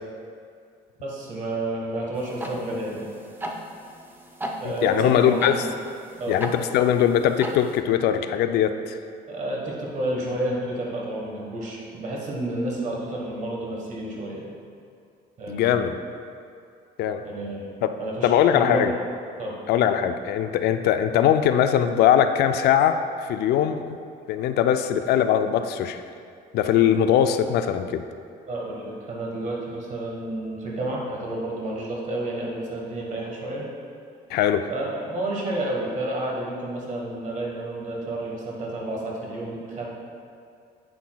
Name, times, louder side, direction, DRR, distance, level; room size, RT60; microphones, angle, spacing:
voice 1, 1.0-3.1 4.6-5.7 6.2-6.4 9.3-14.5 15.4-15.9 17.2-19.0 19.4-19.5 28.5-33.7 34.7-39.9, right 1 dB, 45° right, -3 dB, 1.3 m, -30 dB
sound 1, 2.2-7.8, right 1 dB, 10° right, 0.5 m, -37 dB
voice 2, 4.8-5.6 6.3-9.0 15.5-16.0 17.0-17.2 18.2-18.9 19.7-24.0 24.3-26.0 26.5-28.0 34.3-34.7, left 9 dB, 70° left, 8 dB, 0.4 m, -21 dB
8.4 x 5.8 x 2.3 m, 2.4 s
cardioid pair, 110°, 17 cm